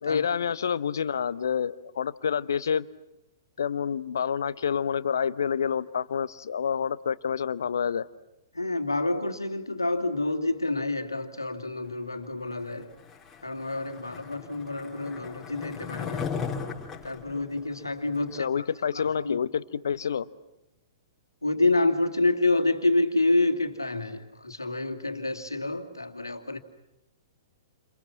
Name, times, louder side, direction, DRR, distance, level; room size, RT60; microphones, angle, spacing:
voice 1, 0.0-2.9 3.6-8.0 18.3-20.3, left 7 dB, 60° left, 1.1 m, -28 dB
voice 2, 8.5-12.9 13.4-16.3 17.0-18.7 18.9-19.4 21.4-26.6, left 2 dB, 80° left, 2.7 m, -28 dB
Skateboard, 13.0-18.4, left 6 dB, 10° left, 5.2 m, -37 dB
30.0 x 29.0 x 6.0 m
figure-of-eight pair, 110°, 2 cm